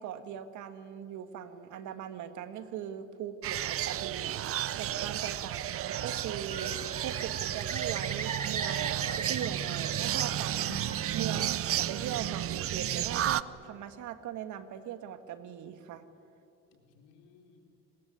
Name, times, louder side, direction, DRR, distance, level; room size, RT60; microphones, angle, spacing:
voice 1, 0.0-10.8 11.1-16.0, right 9 dB, 65° right, 10 dB, 1.8 m, -40 dB
sound 1, 3.4-13.4, right 12 dB, 45° right, 0.7 m, -32 dB
voice 2, 4.8-5.3 10.7-10.9 16.7-17.6, left 8 dB, 80° left, 3 dB, 4.0 m, -54 dB
Bird, 5.7-6.3 6.5-10.2 10.5-11.4, right 3 dB, 20° right, 2.6 m, -41 dB
27.0 x 20.5 x 9.6 m, 2.9 s
supercardioid pair, 100°, 32 cm